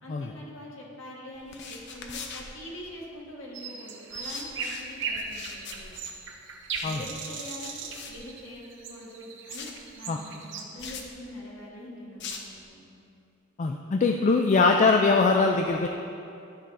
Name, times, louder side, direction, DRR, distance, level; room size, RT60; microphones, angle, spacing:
voice 1, 0.0-6.0 6.8-12.9, left 1 dB, 75° left, -4 dB, 1.6 m, -44 dB
sound 1, 1.3-3.2 4.1-8.8 9.5-9.9 10.8-11.1 12.2-12.6, left 5 dB, 60° left, 0.7 m, -42 dB
sound 2, 3.5-10.6, right 4 dB, 65° right, 0.9 m, -37 dB
voice 2, 13.6-15.9, left 4 dB, 35° left, 3 dB, 0.3 m, -22 dB
11.5 x 5.5 x 3.7 m, 2.6 s
head